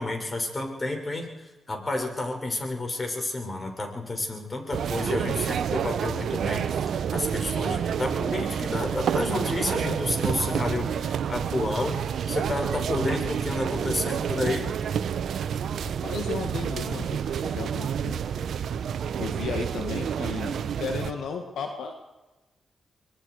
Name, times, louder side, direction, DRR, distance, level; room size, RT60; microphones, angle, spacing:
voice 1, 0.0-6.8 7.1-12.0 12.3-14.7, left 2 dB, 35° left, 2 dB, 6.6 m, -30 dB
sound 1, 4.7-21.1, right 8 dB, 75° right, 1.0 m, -29 dB
voice 2, 15.8-18.2 19.2-21.9, left 5 dB, 80° left, 4 dB, 1.9 m, -34 dB
26.0 x 21.5 x 5.0 m, 1.1 s
supercardioid pair, 45°, 0 cm